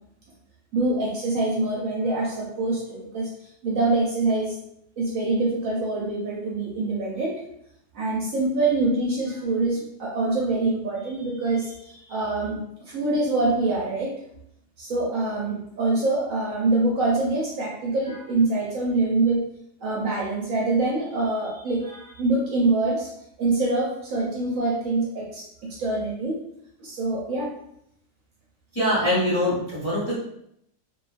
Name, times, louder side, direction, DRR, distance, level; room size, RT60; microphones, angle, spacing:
voice 1, 0.7-4.6 5.0-7.4 7.9-14.1 14.8-19.5 19.8-23.1 23.4-26.4 26.8-27.5, right 2 dB, 65° right, -5 dB, 0.9 m, -25 dB
voice 2, 28.7-30.2, left 1 dB, 25° left, -9 dB, 0.7 m, -23 dB
2.7 x 2.3 x 2.4 m, 0.75 s
omnidirectional pair, 1.7 m